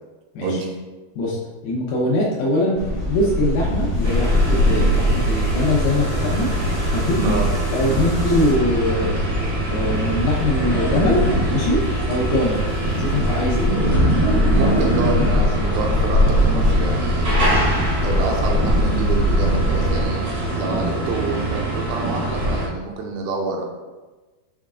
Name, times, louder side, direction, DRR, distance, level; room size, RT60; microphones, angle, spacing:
voice 1, 0.4-0.7 7.1-7.5 14.6-17.7 18.0-23.6, right 3 dB, 80° right, 0 dB, 2.5 m, -27 dB
voice 2, 1.6-2.8 3.1-6.5 6.9-7.2 7.7-9.2 9.7-11.2 11.5-12.6 13.0-13.8, left 1 dB, 75° left, -5 dB, 2.6 m, -22 dB
sound 1, 2.7-20.1, left 1 dB, 55° left, 0.7 m, -22 dB
sound 2, 4.0-22.7, right 1 dB, 55° right, 1.0 m, -24 dB
7.4 x 3.6 x 3.6 m, 1.2 s
omnidirectional pair, 4.6 m